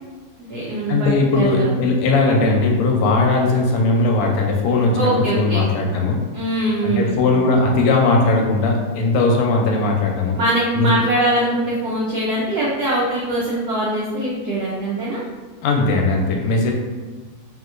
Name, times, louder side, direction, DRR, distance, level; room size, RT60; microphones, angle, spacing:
voice 1, 0.4-1.7 5.0-5.7 6.3-7.2 10.4-15.2, right 1 dB, 85° right, -5 dB, 0.8 m, -22 dB
voice 2, 0.9-6.2 6.8-10.4 10.7-10.9 15.6-16.7, left 3 dB, 85° left, 0 dB, 1.5 m, -18 dB
3.3 x 2.8 x 2.4 m, 1.3 s
omnidirectional pair, 2.3 m